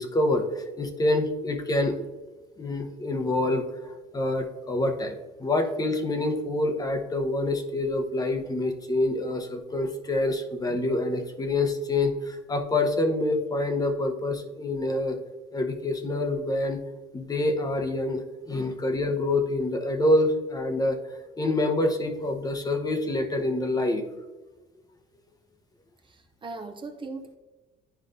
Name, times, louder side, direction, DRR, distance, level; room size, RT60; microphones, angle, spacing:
voice 1, 0.0-2.0 2.6-15.2 15.5-16.8 17.1-24.0, left 2 dB, 20° left, 5 dB, 0.8 m, -26 dB
voice 2, 26.0-27.4, right 3 dB, 30° right, 6 dB, 0.5 m, -39 dB
10.0 x 4.8 x 2.6 m, 1.2 s
cardioid pair, 110°, 17 cm